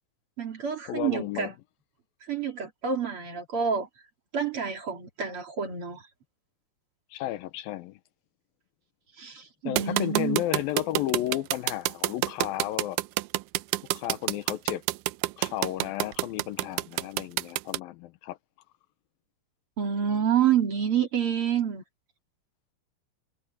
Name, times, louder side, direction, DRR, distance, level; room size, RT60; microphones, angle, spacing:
voice 1, 0.4-1.5 2.2-3.9 4.3-6.1 9.2-10.4 19.8-21.8, right 8 dB, 40° right, 3.0 m, -28 dB
voice 2, 0.9-1.5 7.1-8.0 9.6-13.0 13.9-14.8 15.4-18.4, left 14 dB, 85° left, 2.7 m, -33 dB
sound 1, 9.8-17.8, right 17 dB, 80° right, 2.1 m, -27 dB
omnidirectional pair, 4.0 m